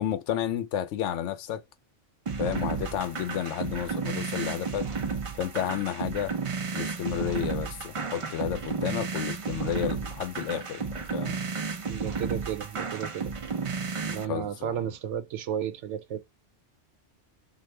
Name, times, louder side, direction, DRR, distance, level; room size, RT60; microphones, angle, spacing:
voice 1, 0.0-1.6 2.4-4.9 5.4-6.3 6.7-11.4 14.2-14.8, left 10 dB, 85° left, 0.9 m, -31 dB
sound 1, 2.3-14.3, right 5 dB, 55° right, 0.3 m, -33 dB
voice 2, 11.9-13.3 14.0-16.2, right 9 dB, 85° right, 0.9 m, -33 dB
2.7 x 2.4 x 3.1 m
omnidirectional pair, 1.2 m